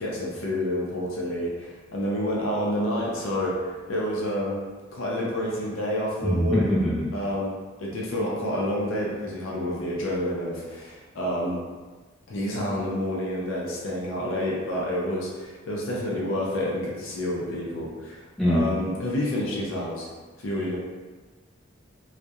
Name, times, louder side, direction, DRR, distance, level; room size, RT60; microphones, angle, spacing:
voice 1, 0.0-4.6 4.9-6.8 7.1-7.5 7.8-11.6 12.3-20.1 20.4-20.8, left 1 dB, 85° left, -4 dB, 0.5 m, -29 dB
voice 2, 6.2-7.1 18.4-18.6, equal, ahead, -8 dB, 0.5 m, -22 dB
2.6 x 2.0 x 2.3 m, 1.4 s
head